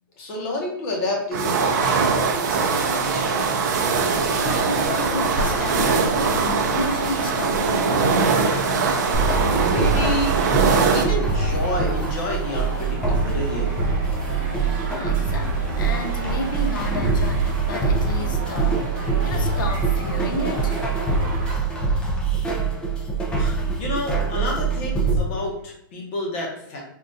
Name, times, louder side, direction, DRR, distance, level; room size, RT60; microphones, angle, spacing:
voice 1, 0.2-3.6 9.5-10.4 10.9-14.0 23.4-26.8, left 1 dB, 35° left, 0.9 m, -30 dB
sound 1, 1.3-11.0, right 5 dB, 55° right, 0.5 m, -22 dB
sound 2, 3.9-21.5, right 2 dB, 35° right, 0.9 m, -31 dB
voice 2, 4.4-8.9 15.0-20.8, left 2 dB, 70° left, 0.6 m, -32 dB
sound 3, 9.1-25.2, right 4 dB, 10° left, 0.4 m, -24 dB
3.6 x 2.3 x 2.7 m
hypercardioid pair, 160°, 11 cm